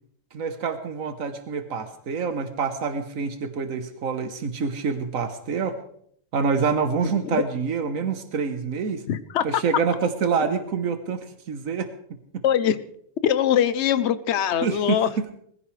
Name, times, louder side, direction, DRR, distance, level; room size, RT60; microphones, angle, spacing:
voice 1, 0.3-5.8 6.3-9.0 9.4-12.4 14.6-15.3, right 5 dB, 90° right, 8 dB, 1.5 m, -27 dB
voice 2, 9.1-9.4 12.4-12.8 13.2-15.1, left 9 dB, 60° left, 13 dB, 1.0 m, -22 dB
20.5 x 15.5 x 3.3 m, 0.66 s
omnidirectional pair, 1.4 m